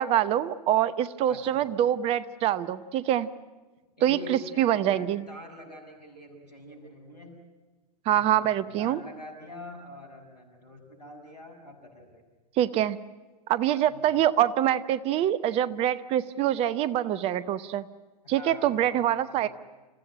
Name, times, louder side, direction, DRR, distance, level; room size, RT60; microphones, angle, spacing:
voice 1, 0.0-3.3 4.0-5.2 8.1-9.0 12.6-13.0 13.5-17.9 18.3-19.5, right 11 dB, 30° right, 16 dB, 0.8 m, -25 dB
voice 2, 1.3-1.6 4.0-7.4 8.1-12.2 13.9-14.2 18.2-19.5, left 2 dB, 75° left, 4 dB, 7.1 m, -45 dB
27.5 x 15.5 x 9.9 m, 1.3 s
figure-of-eight pair, 105°, 21 cm